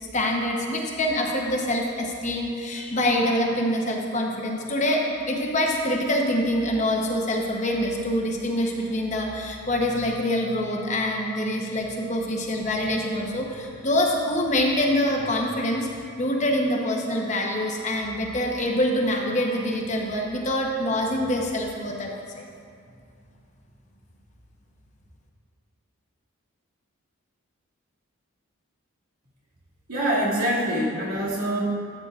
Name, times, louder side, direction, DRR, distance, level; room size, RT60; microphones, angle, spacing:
voice 1, 0.1-15.9 16.2-22.5, left 1 dB, 35° left, 0 dB, 0.9 m, -25 dB
voice 2, 29.9-31.6, right 1 dB, 85° right, -6 dB, 2.3 m, -25 dB
13.5 x 8.7 x 2.5 m, 2.3 s
head